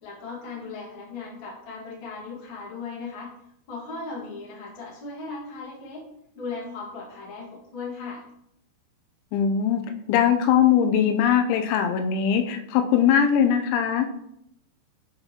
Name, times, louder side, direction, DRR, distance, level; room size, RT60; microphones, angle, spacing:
voice 1, 0.0-3.3 3.7-6.1 6.3-8.2, left 4 dB, 55° left, -5 dB, 1.4 m, -37 dB
voice 2, 9.3-9.8 10.1-14.1, left 8 dB, 90° left, 6 dB, 3.0 m, -21 dB
8.6 x 4.0 x 2.8 m, 0.76 s
omnidirectional pair, 5.3 m